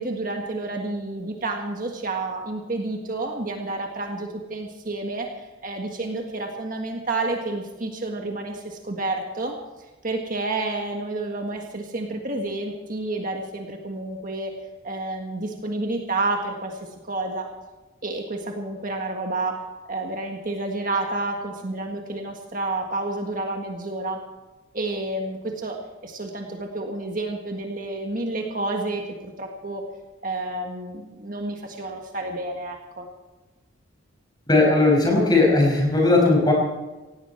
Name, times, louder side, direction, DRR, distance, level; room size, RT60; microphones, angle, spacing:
voice 1, 0.0-9.5 10.0-14.5 14.8-16.8 17.0-17.5 18.0-19.6 19.9-24.2 24.7-29.8 30.2-33.1, right 2 dB, 40° right, 2 dB, 1.7 m, -30 dB
voice 2, 34.5-36.5, left 2 dB, 20° left, -1 dB, 5.5 m, -18 dB
17.5 x 17.5 x 4.5 m, 1.1 s
head